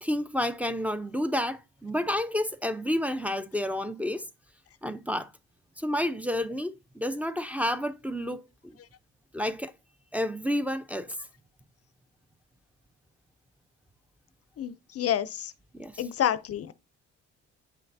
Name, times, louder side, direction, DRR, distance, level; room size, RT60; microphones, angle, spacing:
voice 1, 0.0-4.3 4.8-5.3 5.8-8.8 9.3-9.7 10.1-11.2 15.7-16.0, left 1 dB, 5° right, 0.6 m, -30 dB
voice 2, 14.6-15.5 16.0-16.7, left 10 dB, 50° left, 0.5 m, -29 dB
8.8 x 5.7 x 2.7 m
cardioid pair, 90°, 30 cm